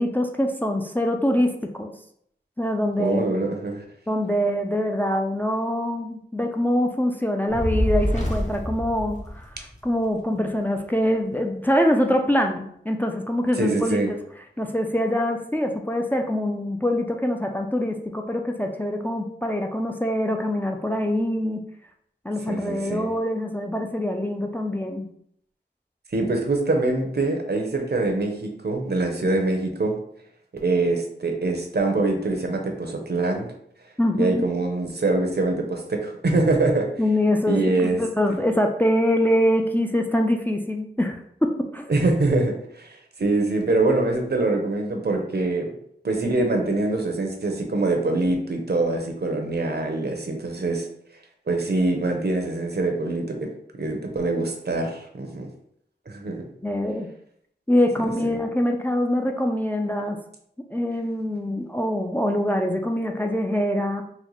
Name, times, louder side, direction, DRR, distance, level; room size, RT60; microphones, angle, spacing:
voice 1, 0.0-1.9 2.6-3.3 4.1-9.5 9.8-14.2 14.6-21.6 22.2-25.1 34.0-34.5 37.0-41.9 56.6-57.1 57.7-60.2 60.7-64.0, left 1 dB, 10° left, 3 dB, 0.3 m, -24 dB
voice 2, 3.0-3.8 13.6-14.1 22.5-23.1 26.1-30.0 30.5-33.5 34.2-36.9 37.5-38.0 38.3-38.4 41.9-45.7 46.0-50.9 51.5-53.5 53.8-55.5 56.1-56.4 58.2-58.3, right 2 dB, 60° right, 3 dB, 0.6 m, -24 dB
Fire, 7.5-9.9, equal, 40° left, 0.9 m, -26 dB
3.9 x 2.1 x 3.0 m, 0.69 s
wide cardioid pair, 50°, 19 cm